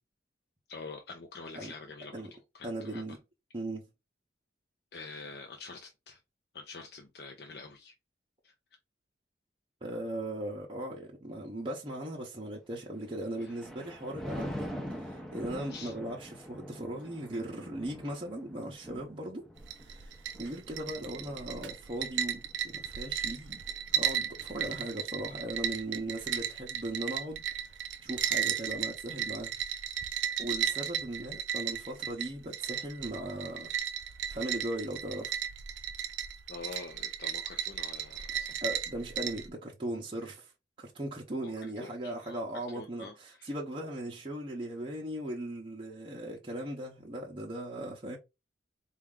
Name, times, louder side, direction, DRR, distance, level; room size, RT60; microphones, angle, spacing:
voice 1, 0.7-2.2 2.5-3.2 4.9-6.2 6.5-7.9 8.4-8.5 15.7-15.9 36.5-38.5 41.4-42.4 42.7-43.5, left 4 dB, 60° left, 0.6 m, -46 dB
voice 2, 2.6-3.2 3.5-3.9 9.8-19.5 19.8-23.6 23.9-27.7 28.0-29.5 30.4-33.7 34.3-35.4 38.4-40.5 40.8-48.2, right 1 dB, 30° right, 0.7 m, -38 dB
Thunder, 13.0-24.5 25.0-25.3, equal, 5° left, 0.6 m, -44 dB
sound 1, 19.6-39.5, right 9 dB, 90° right, 0.5 m, -35 dB
4.3 x 2.4 x 3.6 m
head